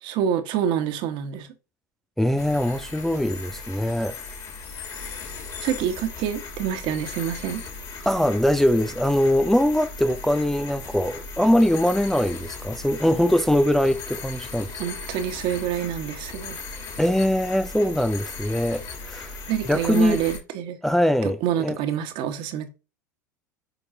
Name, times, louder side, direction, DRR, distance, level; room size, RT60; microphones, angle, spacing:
voice 1, 0.0-1.5 5.6-7.6 14.8-16.6 19.5-20.8 21.2-22.7, right 9 dB, 50° right, 1.4 m, -27 dB
voice 2, 2.2-4.2 8.1-14.7 17.0-19.4 19.7-20.2 20.8-21.8, left 1 dB, 5° left, 0.4 m, -22 dB
sound 1, 2.4-20.4, left 4 dB, 40° left, 2.9 m, -37 dB
8.1 x 5.3 x 2.7 m
figure-of-eight pair, 80°, 10 cm